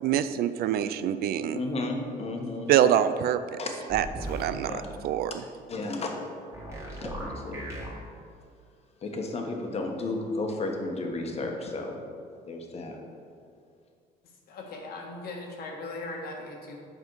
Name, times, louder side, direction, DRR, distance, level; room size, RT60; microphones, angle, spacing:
voice 1, 0.0-1.6 2.7-3.6 3.9-4.7 5.0-5.3, right 10 dB, 65° right, 12 dB, 0.4 m, -25 dB
voice 2, 1.5-2.7 3.6-3.7 4.2-4.3 4.7-4.9 5.7-6.3 7.0-7.7 9.0-12.0 12.4-13.0, left 2 dB, 40° left, 2 dB, 1.2 m, -33 dB
sound 1, 3.9-4.6 6.5-7.9, right 1 dB, 15° right, 1.9 m, -37 dB
voice 3, 14.5-16.8, left 2 dB, 65° left, 0 dB, 1.5 m, -39 dB
7.9 x 5.3 x 4.7 m, 2.2 s
cardioid pair, 110°, 17 cm